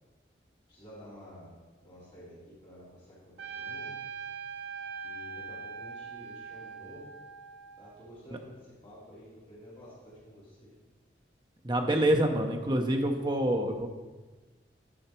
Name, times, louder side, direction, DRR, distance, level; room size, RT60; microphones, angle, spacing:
voice 1, 0.7-1.5 1.8-2.4 2.6-3.9 5.0-7.0 7.8-10.7 12.1-12.2, equal, 30° left, -9 dB, 2.8 m, -50 dB
Trumpet, 3.4-8.1, right 6 dB, 65° right, 0.5 m, -42 dB
voice 2, 11.6-13.9, right 1 dB, 25° right, 4 dB, 0.7 m, -26 dB
10.0 x 5.7 x 4.4 m, 1.3 s
head